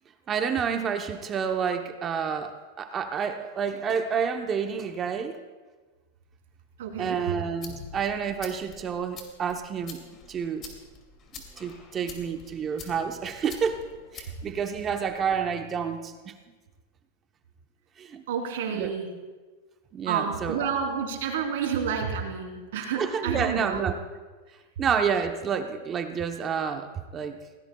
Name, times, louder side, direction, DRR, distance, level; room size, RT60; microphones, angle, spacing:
voice 1, 0.3-5.4 7.0-10.0 10.3-10.7 11.6-13.8 14.1-16.3 18.0-18.2 18.7-18.9 19.9-20.7 23.0-23.9 24.8-27.4, right 7 dB, 25° right, 6 dB, 0.9 m, -29 dB
voice 2, 6.8-7.2 18.3-19.1 20.0-24.0, right 7 dB, 75° right, 2 dB, 3.2 m, -30 dB
sound 1, 7.3-15.4, left 5 dB, 30° left, 2.5 m, -47 dB
20.0 x 17.5 x 2.3 m, 1.3 s
supercardioid pair, 135°, 0 cm